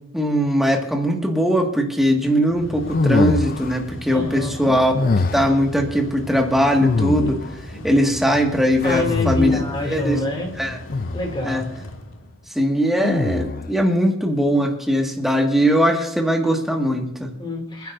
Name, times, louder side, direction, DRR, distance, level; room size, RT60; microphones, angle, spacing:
voice 1, 0.1-7.4 7.8-10.2 10.6-10.8 11.4-11.6 12.5-17.3, equal, ahead, 1 dB, 1.8 m, -20 dB
Mechanical fan, 2.1-12.7, left 1 dB, 75° left, 1.6 m, -38 dB
sound 1, 2.9-3.8 4.9-5.7 6.8-7.6 8.8-9.8 10.9-11.4 13.0-13.7, left 3 dB, 45° left, 0.5 m, -23 dB
voice 2, 4.1-4.7 7.7-7.9 8.8-10.5 11.1-11.6 17.4-17.9, left 2 dB, 25° left, 1 dB, 2.6 m, -27 dB
29.5 x 10.5 x 2.6 m, 0.88 s
head